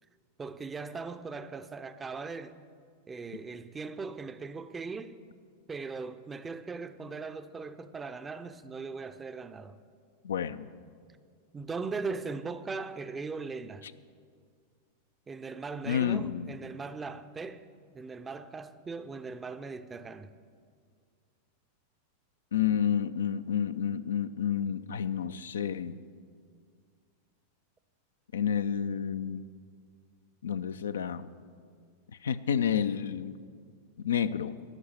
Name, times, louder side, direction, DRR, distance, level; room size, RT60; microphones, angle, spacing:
voice 1, 0.4-2.6 3.1-5.2 5.7-9.8 11.5-13.9 15.3-17.7 17.9-20.3, right 4 dB, 15° right, 0.6 m, -39 dB
voice 2, 10.2-10.7 15.8-16.5 22.5-26.0 28.3-29.4 30.4-31.3 32.2-33.3 34.0-34.6, left 8 dB, 65° left, 0.4 m, -30 dB
13.5 x 6.3 x 9.5 m
figure-of-eight pair, 90°, 0 cm